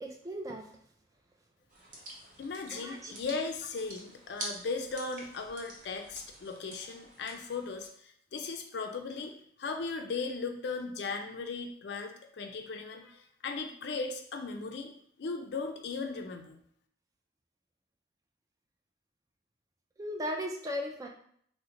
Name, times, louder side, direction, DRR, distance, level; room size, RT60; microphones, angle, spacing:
voice 1, 0.0-0.7 2.7-3.1 20.0-21.1, equal, 20° right, 1 dB, 0.3 m, -37 dB
sound 1, 1.7-7.9, right 1 dB, 45° right, 0.7 m, -47 dB
voice 2, 2.4-9.3 9.6-14.9 15.2-16.6, left 4 dB, 60° left, 4 dB, 0.4 m, -37 dB
2.9 x 2.1 x 3.6 m, 0.64 s
head